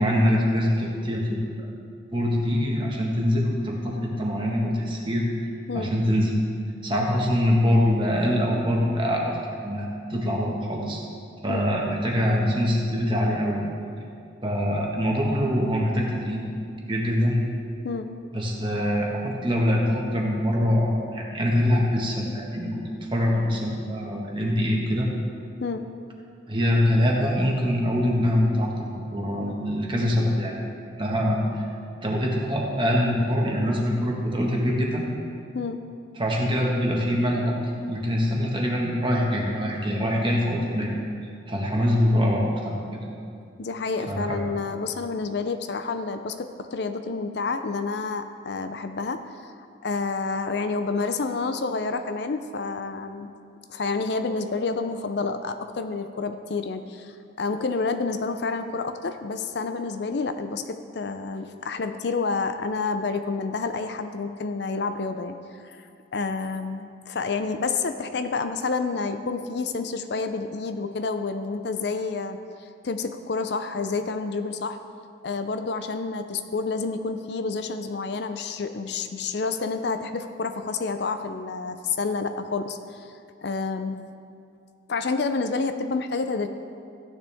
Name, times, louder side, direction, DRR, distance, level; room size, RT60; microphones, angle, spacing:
voice 1, 0.0-1.7 2.1-5.2 5.7-6.3 6.8-11.0 11.4-13.6 14.4-16.4 16.9-17.4 18.3-25.1 26.5-30.6 31.0-31.4 32.0-35.0 36.2-37.5 37.9-40.9 41.5-43.0 44.1-44.6, equal, 25° right, -2 dB, 1.5 m, -24 dB
voice 2, 17.8-18.2 25.6-25.9 35.5-35.8 43.6-49.3 49.8-53.3 53.7-65.8 66.1-72.4 72.8-74.8 75.2-83.1 83.4-84.0 84.9-86.5, left 4 dB, 55° left, 8 dB, 0.5 m, -29 dB
14.5 x 9.8 x 3.5 m, 2.4 s
head